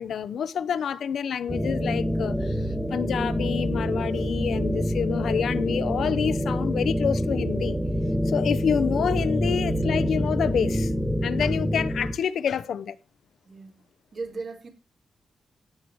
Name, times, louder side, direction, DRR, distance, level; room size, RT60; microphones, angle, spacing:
voice 1, 0.0-2.6 2.9-7.8 8.3-13.0, left 8 dB, 70° left, 0.8 m, -28 dB
sound 1, 1.5-12.1, equal, 5° right, 1.3 m, -26 dB
voice 2, 13.4-13.8 14.1-14.7, right 3 dB, 45° right, 4.0 m, -38 dB
16.5 x 8.7 x 4.7 m
wide cardioid pair, 120°, 0 cm